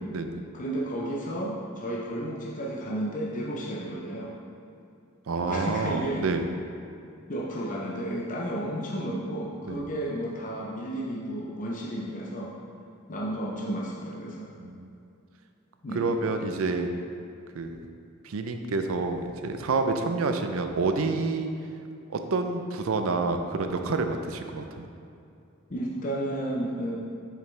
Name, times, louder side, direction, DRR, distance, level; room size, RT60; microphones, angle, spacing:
voice 1, 0.5-4.3 5.5-6.2 7.3-12.5 13.1-14.5 15.8-16.1 25.7-26.9, right 1 dB, 40° left, -4 dB, 0.6 m, -32 dB
voice 2, 5.3-6.5 9.6-9.8 14.6-14.9 15.9-16.9 17.5-17.8 18.2-21.5 22.1-24.9, right 3 dB, 80° right, 6 dB, 0.5 m, -28 dB
7.4 x 5.2 x 3.3 m, 2.6 s
head